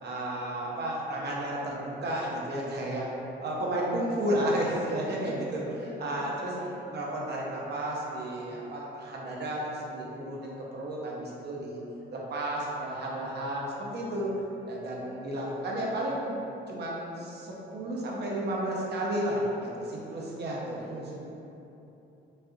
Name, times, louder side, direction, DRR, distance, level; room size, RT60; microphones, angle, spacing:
voice 1, 0.0-3.1 3.4-5.6 6.0-6.5 6.9-11.8 12.1-14.3 14.7-16.3 16.7-21.2, right 1 dB, 55° right, -4 dB, 0.9 m, -32 dB
voice 2, 5.2-6.8 20.8-20.9, left 2 dB, 70° left, -7 dB, 1.3 m, -44 dB
5.3 x 2.5 x 2.7 m, 2.9 s
cardioid pair, 90°, 20 cm